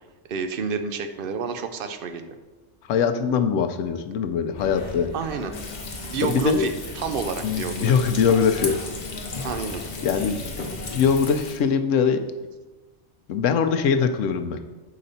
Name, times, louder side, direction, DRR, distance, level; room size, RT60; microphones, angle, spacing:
voice 1, 0.3-2.3 5.1-5.5 6.0-7.9 9.4-9.8, right 5 dB, 60° right, 8 dB, 0.6 m, -29 dB
voice 2, 2.9-5.1 6.2-6.6 7.4-8.8 10.0-10.4 10.9-12.2 13.3-14.6, left 6 dB, 80° left, 7 dB, 1.0 m, -22 dB
sound 1, 4.5-11.2, left 1 dB, 20° left, 1.5 m, -39 dB
Frying (food), 5.5-11.6, left 4 dB, 45° left, 0.9 m, -36 dB
6.6 x 5.1 x 4.0 m, 1.2 s
omnidirectional pair, 1.3 m